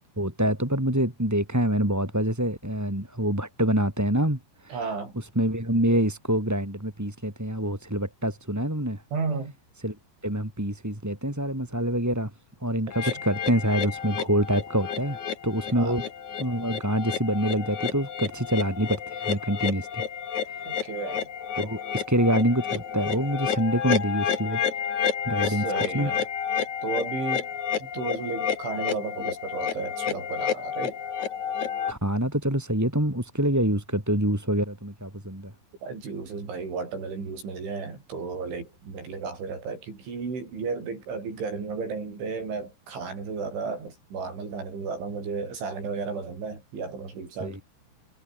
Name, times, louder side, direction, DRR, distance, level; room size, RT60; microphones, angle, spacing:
voice 1, 0.2-4.8 5.1-9.0 9.8-10.0 10.2-12.3 12.6-16.0 16.4-20.0 20.5-20.7 21.5-24.6 25.2-25.6 25.9-26.1 31.9-35.5 47.4-47.6, right 1 dB, 5° right, 2.4 m, -26 dB
voice 2, 4.7-5.1 9.1-9.6 13.0-13.1 15.8-16.0 20.7-21.3 25.4-26.3 26.8-27.5 27.8-31.0 35.8-47.6, right 4 dB, 80° right, 10.5 m, -33 dB
sound 1, 12.9-31.9, left 8 dB, 45° left, 3.2 m, -30 dB
omnidirectional pair, 5.4 m